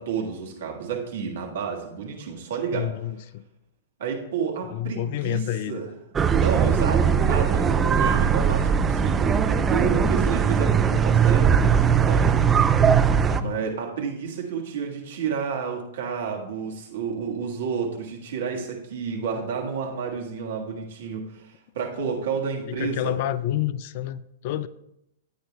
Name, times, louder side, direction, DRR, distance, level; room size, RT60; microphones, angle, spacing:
voice 1, 0.0-2.9 4.0-5.4 5.7-5.9 6.3-12.3 13.4-23.2, right 6 dB, 60° right, 1 dB, 1.6 m, -30 dB
voice 2, 2.7-3.4 4.6-5.8 13.3-13.6 22.7-24.7, left 12 dB, 50° left, 16 dB, 0.4 m, -29 dB
sound 1, 6.2-13.4, right 7 dB, 20° right, 0.5 m, -20 dB
14.5 x 8.8 x 2.3 m, 0.82 s
figure-of-eight pair, 105°, 0 cm